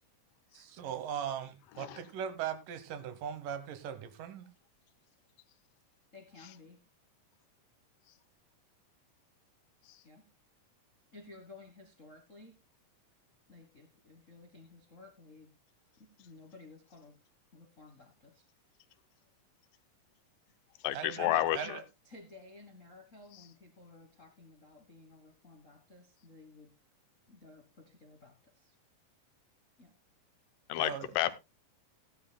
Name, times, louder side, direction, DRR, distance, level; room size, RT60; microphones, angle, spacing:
voice 1, 0.5-4.5 20.9-21.8 30.8-31.1, right 8 dB, 75° right, 2.7 m, -39 dB
voice 2, 6.1-6.8 10.0-10.3 11.1-12.5 13.5-15.5 16.0-17.1 17.5-18.4 21.2-21.4 21.6-26.7 27.3-28.7 29.8-29.9, left 3 dB, 60° left, 0.8 m, -54 dB
voice 3, 20.8-21.7 30.7-31.4, left 14 dB, 85° left, 2.4 m, -31 dB
16.5 x 11.5 x 2.2 m
omnidirectional pair, 3.9 m